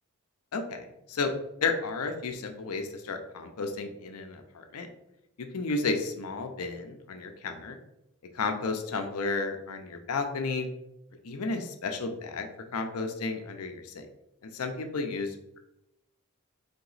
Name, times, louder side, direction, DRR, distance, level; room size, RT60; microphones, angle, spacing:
voice 1, 0.5-1.3 1.6-4.9 5.4-7.8 8.3-10.7 11.2-14.0 14.4-15.3, left 4 dB, 80° left, 6 dB, 0.6 m, -32 dB
3.6 x 2.9 x 3.9 m, 0.87 s
head